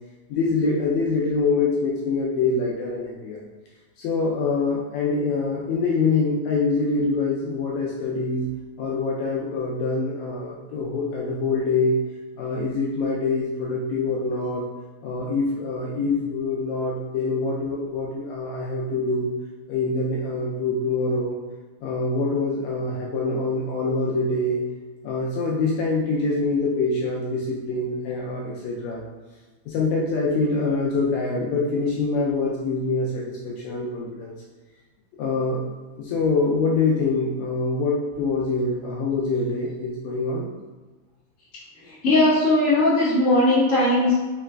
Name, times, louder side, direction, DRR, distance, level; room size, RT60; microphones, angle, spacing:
voice 1, 0.3-3.4 4.0-8.5 8.8-12.0 12.4-14.6 15.0-19.3 19.7-21.4 21.8-24.6 25.0-29.0 29.7-34.3 35.2-35.6 36.0-40.5, left 3 dB, 80° left, -3 dB, 1.7 m, -25 dB
voice 2, 42.0-44.1, left 1 dB, 40° left, -10 dB, 1.3 m, -18 dB
4.8 x 3.1 x 2.2 m, 1.3 s
omnidirectional pair, 3.4 m